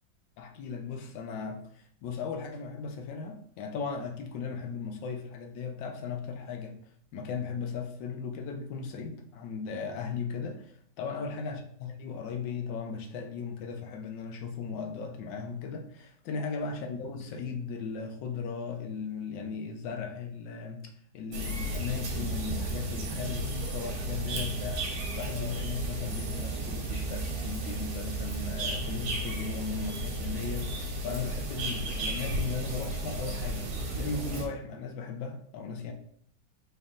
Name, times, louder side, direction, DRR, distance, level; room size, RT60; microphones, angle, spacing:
voice 1, 0.4-6.8 7.1-10.7 11.0-20.8 21.1-24.9 25.1-33.7 34.0-35.9, left 5 dB, 75° left, 4 dB, 1.3 m, -37 dB
sound 1, 21.3-34.5, right 2 dB, 90° right, 1.7 m, -34 dB
4.4 x 3.3 x 2.5 m, 0.64 s
omnidirectional pair, 2.1 m